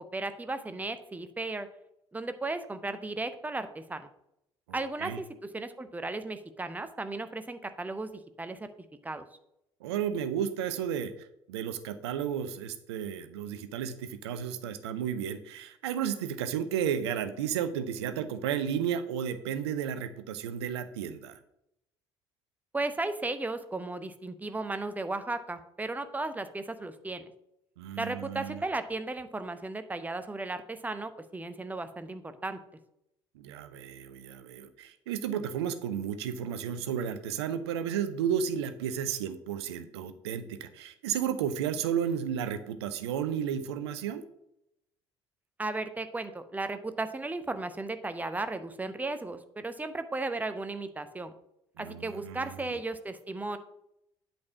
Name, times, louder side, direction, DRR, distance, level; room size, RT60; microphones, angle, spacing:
voice 1, 0.0-1.7 2.1-4.1 4.7-8.7 9.0-9.2 22.7-27.2 28.0-32.6 45.6-51.3 51.8-53.6, right 2 dB, 10° right, 10 dB, 0.8 m, -35 dB
voice 2, 4.7-5.2 9.8-21.3 27.8-28.6 33.4-44.2 51.8-52.8, right 8 dB, 65° right, 11 dB, 0.8 m, -33 dB
8.5 x 4.4 x 7.1 m, 0.81 s
figure-of-eight pair, 55°, 15 cm